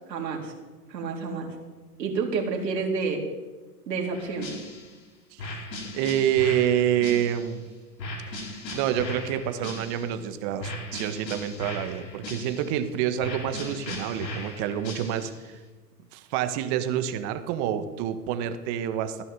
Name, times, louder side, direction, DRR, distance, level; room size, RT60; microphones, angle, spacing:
voice 1, 0.1-0.5 0.9-1.5 2.0-3.2 3.9-4.5, right 4 dB, 80° right, 1 dB, 3.9 m, -29 dB
sound 1, 4.1-5.0 5.4-7.6 8.0-10.2 10.6-12.8 13.2-15.4, left 1 dB, 85° left, 4.2 m, -37 dB
voice 2, 5.9-7.6 8.7-15.6 16.1-19.2, right 10 dB, 45° right, 9 dB, 1.6 m, -27 dB
16.0 x 11.0 x 6.9 m, 1.3 s
hypercardioid pair, 125°, 49 cm